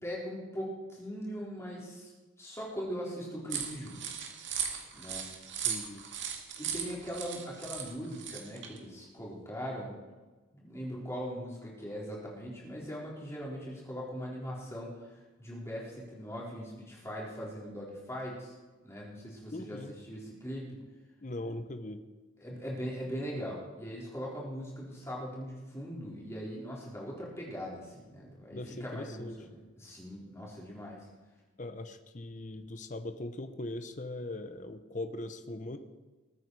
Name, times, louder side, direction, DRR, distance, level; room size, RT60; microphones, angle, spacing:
voice 1, 0.0-2.1 2.4-4.0 4.9-5.3 6.6-10.0 10.5-18.5 18.8-20.8 22.4-29.5 29.8-31.1, equal, 15° left, -4 dB, 4.1 m, -40 dB
sound 1, 3.5-8.8, right 8 dB, 60° right, 2.1 m, -37 dB
voice 2, 5.6-6.1 19.5-19.9 21.2-22.0 28.5-29.4 31.6-35.8, left 1 dB, 40° left, 9 dB, 0.8 m, -40 dB
21.0 x 9.4 x 4.8 m, 1.2 s
head